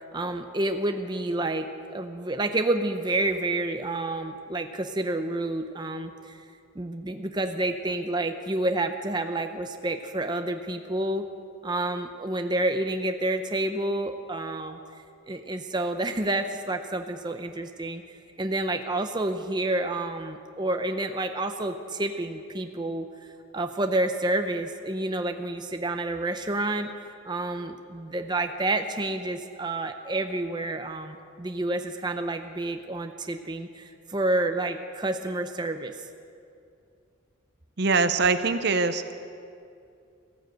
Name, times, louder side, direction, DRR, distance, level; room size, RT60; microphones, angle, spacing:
voice 1, 0.1-6.4 6.8-11.2 11.6-14.8 15.3-23.1 23.5-35.9, right 2 dB, 20° right, 6 dB, 0.6 m, -29 dB
voice 2, 37.8-39.1, right 4 dB, 55° right, 10 dB, 0.7 m, -23 dB
15.0 x 12.0 x 7.8 m, 2.4 s
head